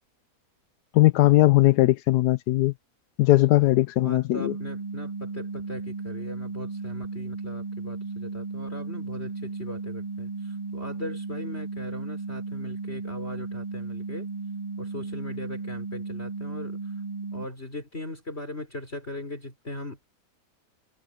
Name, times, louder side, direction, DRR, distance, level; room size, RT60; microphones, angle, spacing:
voice 1, 0.9-2.7 3.2-4.6, left 17 dB, 75° left, 1.1 m, -19 dB
voice 2, 4.0-14.3 14.8-16.8 17.3-20.1, left 1 dB, 35° left, 5.3 m, -39 dB
sound 1, 4.3-17.5, right 4 dB, 40° right, 0.6 m, -35 dB
omnidirectional pair, 1.8 m